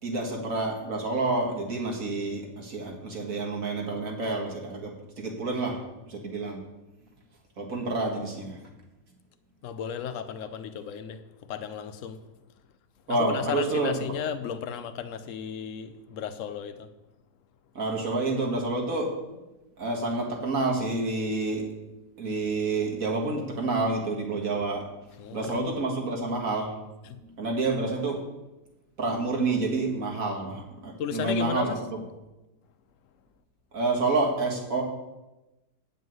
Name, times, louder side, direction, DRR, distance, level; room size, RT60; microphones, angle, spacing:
voice 1, 0.0-5.8 6.1-6.6 7.6-8.6 13.1-14.0 17.8-19.1 19.8-21.7 22.2-24.9 25.3-26.7 27.4-28.2 29.0-31.8 33.7-34.8, right 3 dB, 55° right, 2.1 m, -28 dB
voice 2, 9.6-12.2 13.1-16.9 25.2-25.7 27.1-27.2 31.0-31.8, left 8 dB, 60° left, 1.0 m, -34 dB
9.2 x 5.5 x 7.8 m
omnidirectional pair, 1.7 m